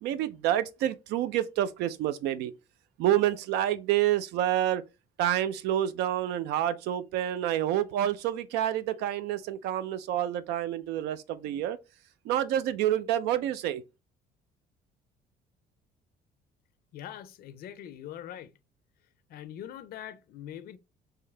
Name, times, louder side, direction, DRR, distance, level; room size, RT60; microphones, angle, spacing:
voice 1, 0.0-2.5 3.0-4.8 5.2-11.8 12.2-13.8, right 12 dB, 85° right, 0.4 m, -28 dB
voice 2, 16.9-18.6 19.3-20.8, left 10 dB, 65° left, 0.5 m, -43 dB
3.7 x 2.7 x 3.2 m
cardioid pair, 110°, 17 cm